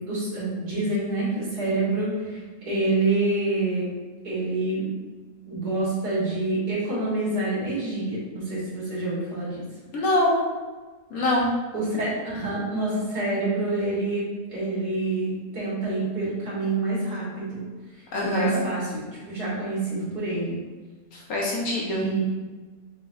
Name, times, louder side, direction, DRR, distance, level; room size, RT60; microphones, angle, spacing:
voice 1, 0.0-3.9 4.2-4.9 5.5-9.6 11.7-17.6 18.2-20.6 21.9-22.3, right 2 dB, 80° right, -8 dB, 2.3 m, -27 dB
voice 2, 9.9-10.4 11.1-11.5 18.1-18.6 21.3-22.0, left 1 dB, 65° left, -4 dB, 1.5 m, -23 dB
6.0 x 3.0 x 2.6 m, 1.3 s
omnidirectional pair, 1.7 m